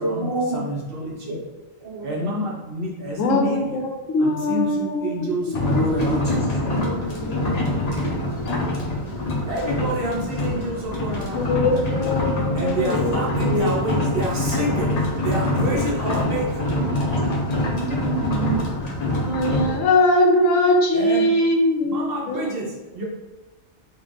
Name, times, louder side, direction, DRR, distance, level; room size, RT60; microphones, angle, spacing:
voice 1, 0.0-0.6 1.3-1.4 1.8-2.3 3.0-3.1 6.3-7.7 16.8-19.3, right 3 dB, 30° right, -6 dB, 0.5 m, -30 dB
voice 2, 0.5-1.4 2.0-3.8 4.2-6.6 9.5-11.6 12.4-16.7 20.9-21.3 21.8-23.0, right 1 dB, 50° right, -3 dB, 0.9 m, -28 dB
voice 3, 3.2-6.6 7.1-8.0 11.2-14.1 19.1-22.5, left 1 dB, 80° left, 2 dB, 1.0 m, -22 dB
sound 1, 5.5-19.8, left 1 dB, 40° left, 0.6 m, -25 dB
3.9 x 2.6 x 3.1 m, 1.2 s
omnidirectional pair, 1.3 m